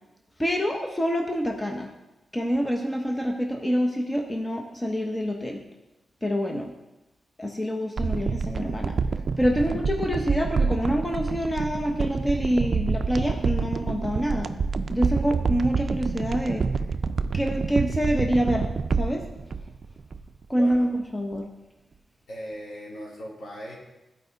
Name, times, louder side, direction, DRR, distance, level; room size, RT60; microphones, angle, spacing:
voice 1, 0.4-1.9 2.3-5.6 6.2-6.7 7.4-9.0 9.4-14.5 14.9-16.6 17.3-18.7 19.0-19.3 20.5-21.5, equal, 15° left, 2 dB, 0.9 m, -26 dB
sound 1, 8.0-20.4 20.7-20.8, right 5 dB, 55° right, 0.4 m, -27 dB
voice 2, 9.5-9.9 20.5-20.9 22.3-23.8, equal, 75° left, -5 dB, 3.1 m, -39 dB
14.5 x 4.8 x 4.0 m, 1.0 s
wide cardioid pair, 110°, 0 cm